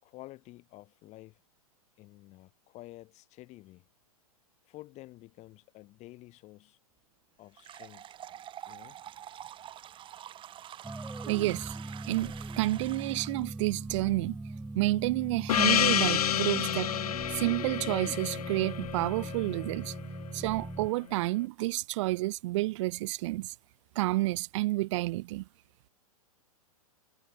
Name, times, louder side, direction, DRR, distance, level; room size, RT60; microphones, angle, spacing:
voice 1, 0.0-1.4 2.0-3.9 4.6-6.8 7.4-8.2 8.7-9.0, left 18 dB, 35° left, 5.4 m, -50 dB
sound 1, 7.6-13.5, right 11 dB, 25° right, 3.1 m, -47 dB
sound 2, 10.8-20.9, right 2 dB, 5° right, 0.9 m, -40 dB
voice 2, 11.3-14.4 14.7-16.9 17.3-19.9 20.3-23.5 23.9-25.4, right 19 dB, 55° right, 1.1 m, -30 dB
Gong, 15.5-20.3, left 10 dB, 80° left, 0.7 m, -29 dB
hypercardioid pair, 120°, 19 cm